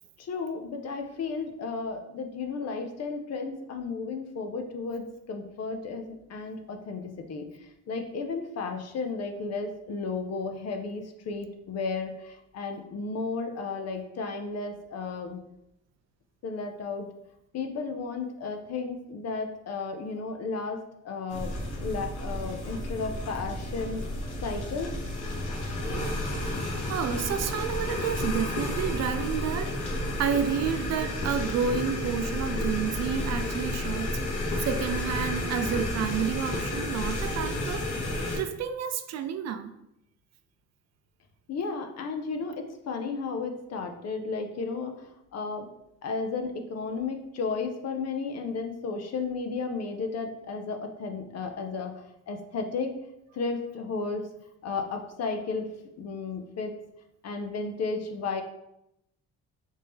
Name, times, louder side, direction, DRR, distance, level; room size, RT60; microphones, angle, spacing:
voice 1, 0.2-7.5 7.9-15.4 16.4-17.1 17.5-20.8 21.0-21.5 21.8-24.0 24.4-25.0 41.5-44.9 45.3-45.7 46.0-52.0 52.3-52.9 53.3-54.3 54.6-55.7 56.0-56.7 57.2-58.4, left 4 dB, 55° left, 5 dB, 0.6 m, -33 dB
sound 1, 21.3-38.4, left 1 dB, 80° left, 1.0 m, -31 dB
voice 2, 26.9-39.7, right 7 dB, 60° right, 9 dB, 0.4 m, -30 dB
3.4 x 2.7 x 3.5 m, 0.82 s
cardioid pair, 90°, 30 cm